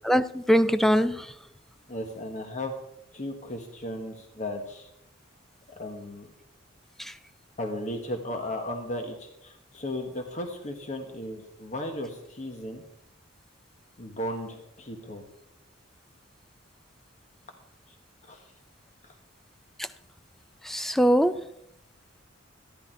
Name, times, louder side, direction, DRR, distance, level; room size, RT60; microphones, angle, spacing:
voice 1, 0.0-1.3 7.0-7.1 19.8-19.9 20.6-21.4, equal, ahead, 0.4 m, -22 dB
voice 2, 1.9-2.7 3.1-4.9 5.7-6.3 7.6-12.8 14.0-15.2 17.9-18.0 18.2-18.5 19.0-19.1, left 1 dB, 35° left, 1.2 m, -35 dB
13.0 x 11.5 x 4.5 m
head